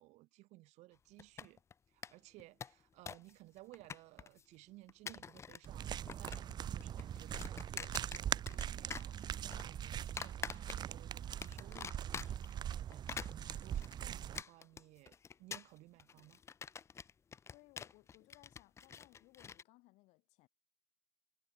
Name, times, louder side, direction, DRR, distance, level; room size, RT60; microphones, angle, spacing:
voice 1, 0.0-1.6 1.9-16.4, right 20 dB, 65° right, 4.7 m, -59 dB
sound 1, 1.2-1.7 2.0-2.1 2.4-3.3 3.6-4.4 4.9-5.7 5.9-6.5 6.8-8.6 8.9-9.6 10.2-11.0 11.4-12.5 12.9-19.6, left 6 dB, 20° left, 0.5 m, -46 dB
sound 2, 5.6-14.4, right 10 dB, 35° right, 0.6 m, -41 dB
voice 2, 17.5-20.5, left 21 dB, 65° left, 4.6 m, -64 dB
cardioid pair, 125°, 12 cm